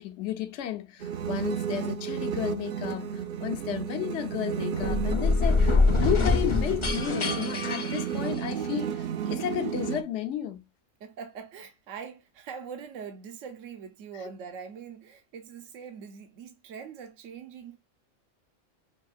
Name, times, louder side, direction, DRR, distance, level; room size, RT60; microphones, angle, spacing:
voice 1, 0.0-10.6, left 11 dB, 70° left, 1.0 m, -33 dB
sound 1, 1.0-10.0, right 8 dB, 60° right, 0.6 m, -32 dB
sound 2, 4.7-8.7, left 3 dB, 35° left, 0.5 m, -25 dB
voice 2, 11.0-17.8, right 6 dB, 80° right, 1.1 m, -42 dB
6.2 x 2.8 x 2.4 m
omnidirectional pair, 1.3 m